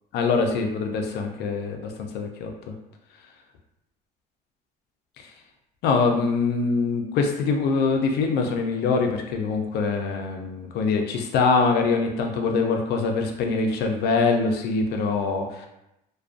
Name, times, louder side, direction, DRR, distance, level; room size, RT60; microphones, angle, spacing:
voice 1, 0.1-2.5 5.8-15.7, left 4 dB, 75° left, 3 dB, 0.5 m, -24 dB
2.4 x 2.2 x 2.4 m, 0.86 s
cardioid pair, 110°, 17 cm